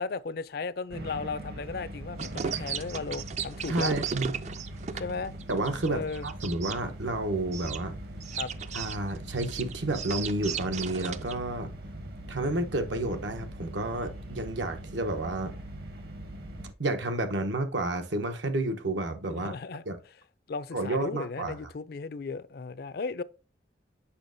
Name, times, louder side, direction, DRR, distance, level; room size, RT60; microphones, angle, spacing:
voice 1, 0.0-4.0 5.0-5.3 5.9-6.3 8.3-8.5 19.3-19.8 20.5-23.2, left 4 dB, 55° left, 0.4 m, -35 dB
sound 1, 0.9-16.7, right 1 dB, 55° right, 0.9 m, -41 dB
sound 2, 2.2-6.8 7.5-7.8 8.2-11.3, right 7 dB, 40° right, 0.3 m, -35 dB
voice 2, 3.7-4.3 5.5-8.0 8.7-11.7 12.3-15.5 16.8-19.5 19.9-20.0 20.7-21.6, right 2 dB, 85° right, 0.9 m, -30 dB
7.0 x 5.5 x 2.6 m
head